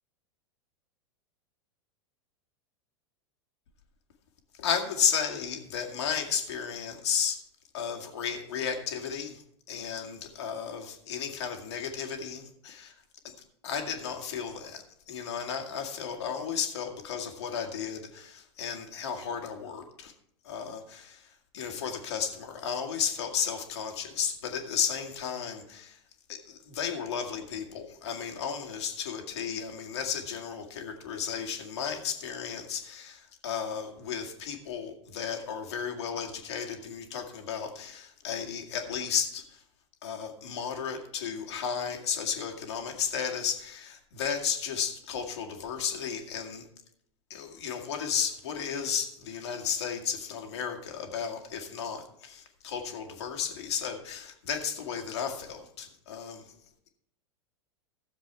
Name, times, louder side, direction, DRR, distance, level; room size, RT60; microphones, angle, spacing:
voice 1, 4.5-7.4 7.7-12.9 13.2-13.3 13.6-20.1 20.4-26.0 26.3-39.6 40.0-46.7 47.3-56.5, left 7 dB, 65° left, 3 dB, 2.2 m, -34 dB
14.5 x 7.4 x 4.6 m, 0.73 s
figure-of-eight pair, 90°, 15 cm